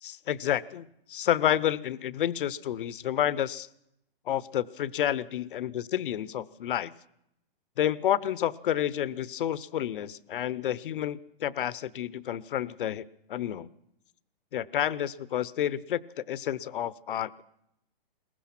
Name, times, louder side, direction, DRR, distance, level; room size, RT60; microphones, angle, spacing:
voice 1, 0.0-3.7 4.3-6.9 7.8-13.7 14.5-17.4, left 11 dB, 60° left, 20 dB, 0.9 m, -30 dB
22.0 x 20.0 x 6.0 m, 0.79 s
hypercardioid pair, 155°, 29 cm